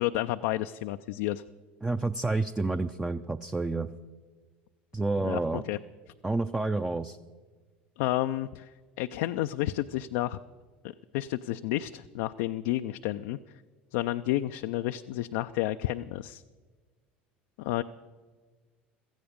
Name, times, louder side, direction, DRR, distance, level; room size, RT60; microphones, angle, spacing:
voice 1, 0.0-1.4 5.2-5.8 8.0-8.7 9.0-10.4 11.1-13.4 13.9-16.4 17.6-17.8, left 15 dB, 70° left, 8 dB, 0.4 m, -30 dB
voice 2, 1.8-3.9 4.9-5.6 6.2-7.2, right 3 dB, 10° right, 8 dB, 0.6 m, -29 dB
17.0 x 14.5 x 5.2 m, 1.4 s
hypercardioid pair, 75°, 6 cm